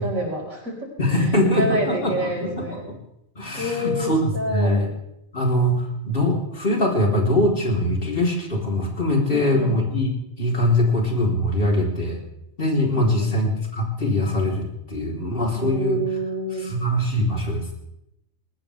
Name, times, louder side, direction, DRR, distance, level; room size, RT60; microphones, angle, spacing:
voice 1, 0.0-0.9 1.6-2.9 3.6-4.8 9.3-9.8 13.0-13.4 15.6-16.7, equal, 75° right, -2 dB, 5.6 m, -28 dB
voice 2, 1.0-2.6 3.4-4.9 5.3-10.1 10.4-12.2 12.6-16.0 16.6-17.7, left 1 dB, 40° left, -1 dB, 3.9 m, -22 dB
21.0 x 19.0 x 3.5 m, 0.82 s
omnidirectional pair, 1.4 m